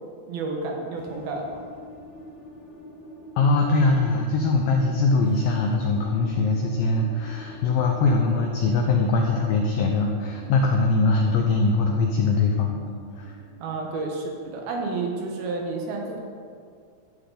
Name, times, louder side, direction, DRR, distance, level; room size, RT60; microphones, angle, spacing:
voice 1, 0.3-1.5 13.6-16.2, right 3 dB, 70° right, 1 dB, 2.7 m, -30 dB
sound 1, 0.9-15.6, equal, 50° left, 3.6 m, -43 dB
voice 2, 3.4-12.8 13.2-13.4, left 3 dB, 85° left, 2 dB, 2.0 m, -22 dB
12.5 x 8.4 x 3.9 m, 2.2 s
omnidirectional pair, 4.9 m